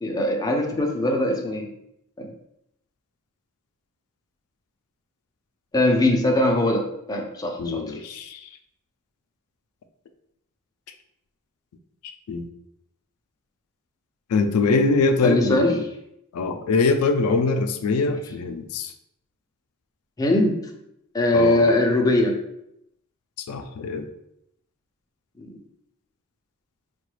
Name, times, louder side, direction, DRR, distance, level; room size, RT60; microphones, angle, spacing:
voice 1, 0.0-1.7 2.2-2.3 5.7-7.9 15.2-15.7 20.2-20.6 21.1-22.4 25.4-25.6, left 1 dB, 15° left, 1 dB, 0.4 m, -21 dB
voice 2, 7.6-8.5 12.3-12.5 14.3-15.8 16.3-18.9 21.3-21.6 23.4-24.1, left 3 dB, 85° left, 6 dB, 0.4 m, -23 dB
3.8 x 2.2 x 3.1 m, 0.78 s
head